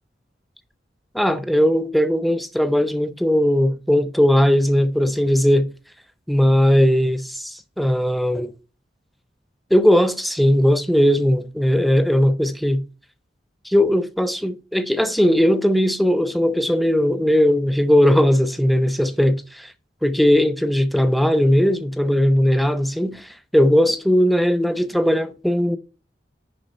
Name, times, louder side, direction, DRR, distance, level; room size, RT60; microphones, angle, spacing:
voice 1, 1.1-5.7 6.3-8.5 9.7-12.8 13.6-19.7 20.0-25.8, equal, ahead, 0.5 m, -18 dB
10.5 x 3.7 x 4.2 m
head